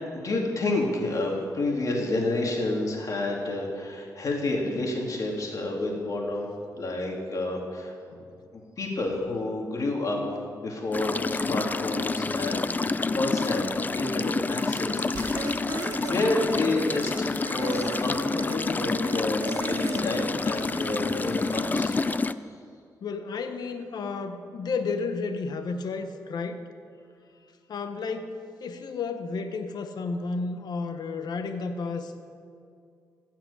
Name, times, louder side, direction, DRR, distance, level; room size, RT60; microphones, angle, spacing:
voice 1, 0.1-6.5 6.8-7.9 8.8-10.3 10.5-15.1 15.4-22.0, left 2 dB, 50° left, -1 dB, 2.8 m, -29 dB
sound 1, 10.9-22.3, left 3 dB, 25° left, 0.4 m, -28 dB
sound 2, 15.1-19.0 19.5-20.8, right 3 dB, 75° right, 1.7 m, -47 dB
sound 3, 15.4-22.2, right 6 dB, 55° right, 0.7 m, -39 dB
voice 2, 23.0-26.6 27.7-32.3, left 4 dB, 70° left, 7 dB, 1.0 m, -32 dB
16.0 x 5.9 x 8.6 m, 2.4 s
cardioid pair, 95°, 7 cm